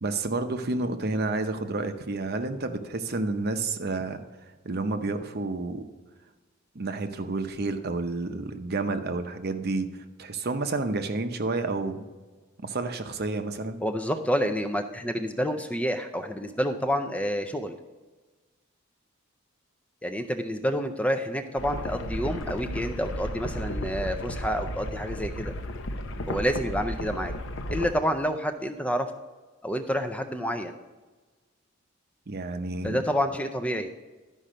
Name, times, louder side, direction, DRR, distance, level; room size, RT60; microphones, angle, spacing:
voice 1, 0.0-4.2 4.6-5.8 6.7-12.0 12.6-13.8 32.3-33.0, right 3 dB, 50° right, 8 dB, 0.7 m, -30 dB
voice 2, 13.8-17.8 20.0-25.5 26.3-27.3 27.7-29.1 29.6-30.8 32.8-33.9, equal, 5° left, 6 dB, 0.4 m, -28 dB
sound 1, 21.6-27.9, left 1 dB, 60° left, 0.7 m, -34 dB
12.0 x 5.4 x 5.0 m, 1.3 s
head